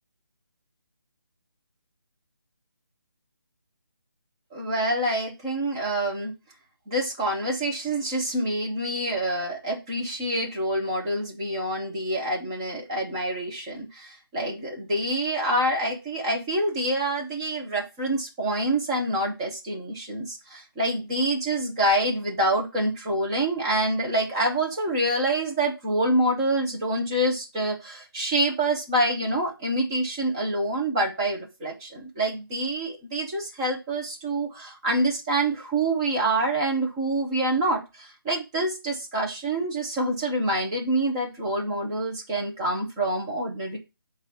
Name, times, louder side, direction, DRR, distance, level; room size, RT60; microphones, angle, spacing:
voice 1, 4.5-6.3 6.9-43.8, right 1 dB, 10° right, -1 dB, 0.9 m, -26 dB
8.0 x 2.7 x 5.5 m, 0.26 s
hypercardioid pair, 175°, 12 cm